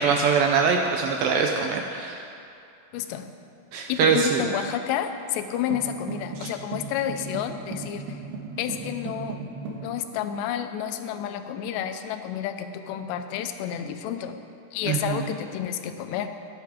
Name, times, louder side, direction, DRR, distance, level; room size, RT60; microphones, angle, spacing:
voice 1, 0.0-2.2 3.7-4.4 6.4-6.5 14.9-15.3, right 5 dB, 80° right, 2 dB, 2.1 m, -23 dB
voice 2, 2.9-3.3 3.9-8.2 8.6-9.4 9.7-14.4 14.7-16.3, left 9 dB, 90° left, 8 dB, 2.9 m, -30 dB
sound 1, 5.7-9.9, right 4 dB, 60° right, 3.2 m, -36 dB
17.0 x 9.4 x 5.0 m, 2.5 s
omnidirectional pair, 4.8 m